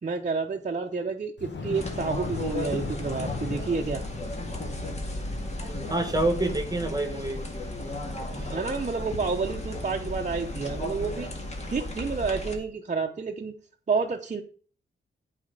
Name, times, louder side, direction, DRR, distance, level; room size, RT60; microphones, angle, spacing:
voice 1, 0.0-4.0 8.3-11.3 11.7-13.5 13.9-14.4, right 4 dB, 40° right, 1 dB, 0.8 m, -30 dB
Thunder, 1.4-12.5, left 4 dB, 70° left, 1.6 m, -40 dB
sound 1, 1.7-12.5, left 1 dB, 35° left, 2.0 m, -35 dB
voice 2, 5.3-7.4 8.1-8.4, right 2 dB, 20° right, 7 dB, 1.4 m, -28 dB
8.6 x 4.3 x 6.5 m, 0.43 s
cardioid pair, 80°, 19 cm